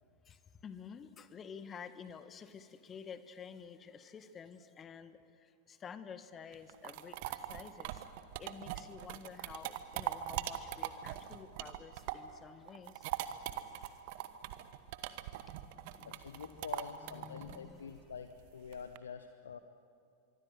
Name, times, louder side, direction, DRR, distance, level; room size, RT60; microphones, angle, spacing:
voice 1, 0.2-8.0 8.4-13.1 15.5-18.1, left 6 dB, 25° left, 12 dB, 1.3 m, -51 dB
sound 1, 6.5-12.4 12.7-19.0, right 14 dB, 50° right, 1.2 m, -41 dB
voice 2, 16.0-19.6, left 6 dB, 70° left, 9 dB, 0.9 m, -47 dB
25.0 x 24.0 x 7.8 m, 2.5 s
figure-of-eight pair, 90°, 0 cm